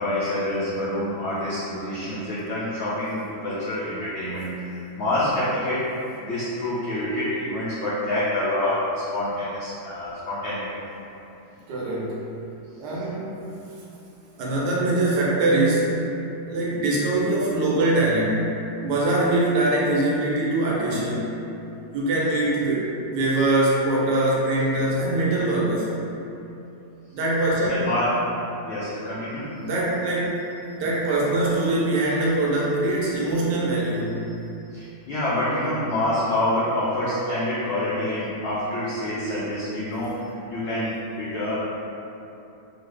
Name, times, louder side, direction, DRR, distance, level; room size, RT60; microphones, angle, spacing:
voice 1, 0.0-5.9 6.2-10.7 12.9-13.1 27.7-29.6 34.7-41.6, left 1 dB, 85° left, -9 dB, 0.6 m, -27 dB
voice 2, 11.7-12.2 12.8-13.3 14.4-16.0 16.5-18.4 18.8-21.3 21.9-25.9 27.1-27.9 29.6-30.4 30.8-34.2, right 2 dB, 85° right, -5 dB, 1.2 m, -23 dB
3.1 x 2.1 x 3.2 m, 2.9 s
omnidirectional pair, 1.8 m